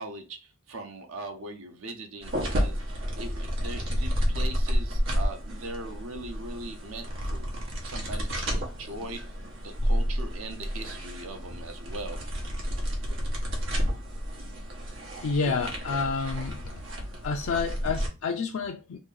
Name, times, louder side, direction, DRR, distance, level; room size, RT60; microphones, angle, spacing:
voice 1, 0.0-7.5 7.8-9.2 9.6-12.2, right 2 dB, 80° right, 0.8 m, -40 dB
sound 1, 2.2-18.1, equal, 65° right, 1.1 m, -31 dB
voice 2, 15.2-16.8 17.2-19.0, left 4 dB, 85° left, 0.4 m, -29 dB
3.0 x 2.6 x 3.8 m
head